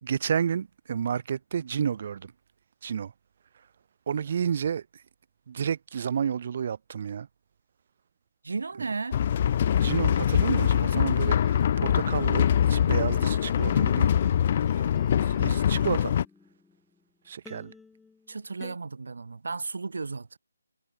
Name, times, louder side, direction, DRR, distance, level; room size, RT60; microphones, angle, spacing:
voice 1, 0.0-2.3 2.8-3.1 4.1-5.0 5.5-7.3 9.8-14.1 14.7-14.9 15.2-16.1 17.3-17.7, right 7 dB, 40° right, 2.0 m, -31 dB
voice 2, 8.4-9.2 18.3-20.4, right 4 dB, 70° right, 3.5 m, -34 dB
sound 1, 9.1-16.2, left 9 dB, 35° left, 0.6 m, -23 dB
sound 2, 11.9-17.0 17.5-18.8, left 4 dB, 5° left, 4.6 m, -50 dB
figure-of-eight pair, 165°, 0 cm